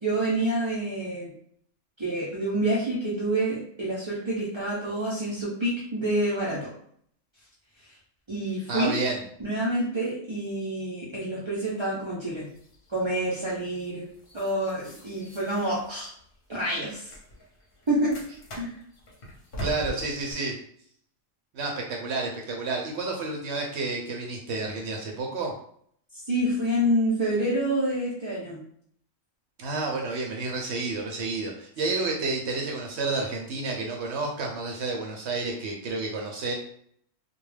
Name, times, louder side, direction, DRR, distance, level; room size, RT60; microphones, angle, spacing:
voice 1, 0.0-1.3 2.0-6.7 8.3-9.0 9.4-12.5 12.9-14.1 14.3-16.1 16.5-17.1 17.9-18.2 18.6-18.7 26.3-28.6 31.9-32.0, right 1 dB, 50° right, -7 dB, 0.3 m, -27 dB
voice 2, 8.7-9.2 19.6-20.5 21.5-25.5 29.6-36.5, right 3 dB, 65° right, 0 dB, 0.7 m, -30 dB
sound 1, 12.3-20.3, equal, 50° left, 0.8 m, -43 dB
2.3 x 2.2 x 3.2 m, 0.64 s
omnidirectional pair, 1.4 m